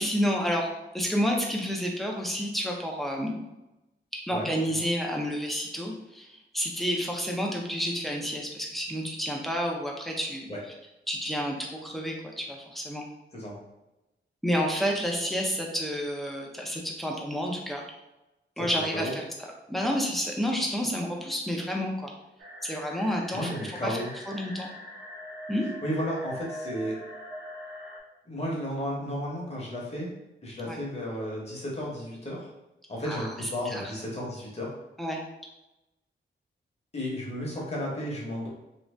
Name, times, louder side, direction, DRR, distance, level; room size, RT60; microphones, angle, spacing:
voice 1, 0.0-3.5 4.1-10.5 11.1-13.0 14.4-17.8 18.6-19.2 19.7-22.1 22.6-23.5 23.8-24.0 24.3-24.7 25.5-25.7 30.6-30.8 33.0-33.9 35.0-35.2, equal, ahead, -1 dB, 0.5 m, -30 dB
voice 2, 18.6-19.1 23.3-24.1 25.8-27.0 28.3-30.1 30.4-32.5 32.9-34.7 36.9-38.5, equal, 35° left, -4 dB, 0.9 m, -33 dB
sound 1, 22.4-28.0, equal, 70° right, 0.8 m, -42 dB
2.8 x 2.6 x 3.2 m, 0.94 s
wide cardioid pair, 175°, 20 cm